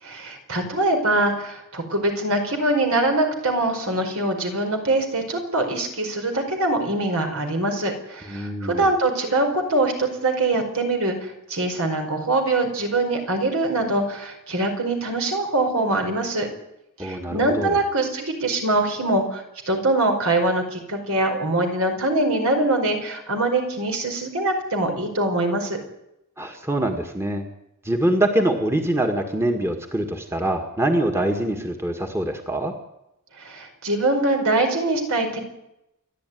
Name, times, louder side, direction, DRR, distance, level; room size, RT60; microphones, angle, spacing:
voice 1, 0.0-16.5 17.0-25.8 33.4-35.4, right 2 dB, 70° right, 4 dB, 5.0 m, -23 dB
voice 2, 8.3-8.9 17.0-17.8 26.4-27.5 27.8-32.7, right 1 dB, 10° right, 3 dB, 1.9 m, -24 dB
29.0 x 11.0 x 9.4 m, 0.86 s
head